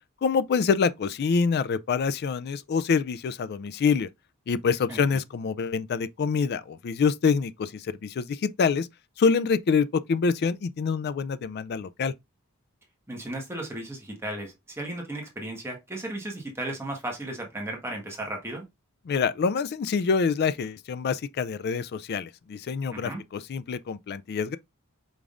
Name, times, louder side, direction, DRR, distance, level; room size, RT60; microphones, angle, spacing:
voice 1, 0.2-4.1 4.5-8.9 9.2-12.1 19.1-24.6, left 5 dB, 50° left, 0.3 m, -26 dB
voice 2, 4.9-5.2 13.1-18.6 22.9-23.2, right 1 dB, 10° right, 1.4 m, -35 dB
5.1 x 3.6 x 2.4 m
head